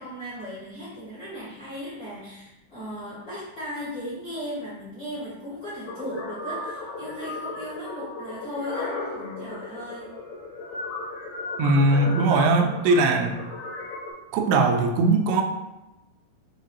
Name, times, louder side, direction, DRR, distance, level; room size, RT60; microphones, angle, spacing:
voice 1, 0.0-10.1, equal, 50° left, -10 dB, 1.3 m, -37 dB
sound 1, 5.9-14.1, left 2 dB, 70° left, 2.3 m, -35 dB
voice 2, 11.6-13.3 14.3-15.4, right 3 dB, 90° right, 3 dB, 2.7 m, -20 dB
7.4 x 2.6 x 2.7 m, 0.96 s
omnidirectional pair, 4.7 m